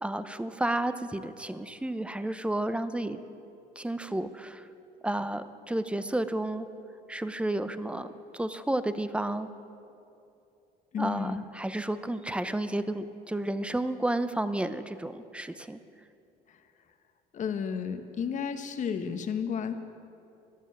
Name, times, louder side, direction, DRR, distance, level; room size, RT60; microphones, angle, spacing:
voice 1, 0.0-3.2 3.8-4.6 5.0-6.7 7.1-9.5 11.0-15.8, right 1 dB, 5° right, 11 dB, 0.6 m, -31 dB
voice 2, 10.9-11.4 17.3-19.7, left 7 dB, 45° left, 8 dB, 1.0 m, -32 dB
13.5 x 11.5 x 7.6 m, 2.7 s
cardioid pair, 110°, 17 cm